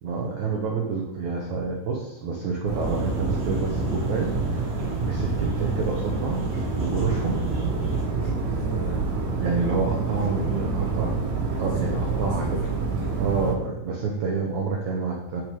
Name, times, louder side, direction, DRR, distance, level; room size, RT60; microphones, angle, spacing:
voice 1, 0.0-4.7 5.0-7.4 9.4-11.1 11.6-12.4 13.2-15.4, right 4 dB, 85° right, -1 dB, 1.6 m, -28 dB
sound 1, 2.7-13.5, right 4 dB, 65° right, 4.0 m, -27 dB
sound 2, 2.8-8.0, left 1 dB, 25° left, 2.6 m, -37 dB
voice 2, 4.8-5.1 7.9-9.1 10.3-10.7 11.5-13.2, left 2 dB, 50° left, -5 dB, 4.6 m, -41 dB
10.5 x 6.3 x 5.2 m, 0.85 s
omnidirectional pair, 5.2 m